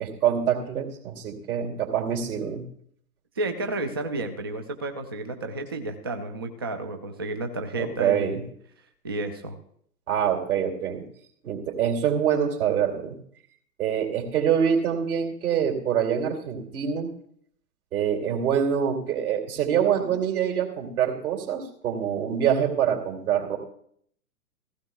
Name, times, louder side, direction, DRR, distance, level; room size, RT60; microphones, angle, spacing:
voice 1, 0.0-2.6 7.7-8.4 10.1-11.1 11.4-13.2 13.8-17.1 17.9-23.6, right 8 dB, 60° right, 1 dB, 2.7 m, -25 dB
voice 2, 3.4-8.4 9.0-9.6, right 2 dB, 15° right, 7 dB, 0.3 m, -31 dB
15.5 x 15.5 x 2.3 m, 0.66 s
figure-of-eight pair, 110°, 49 cm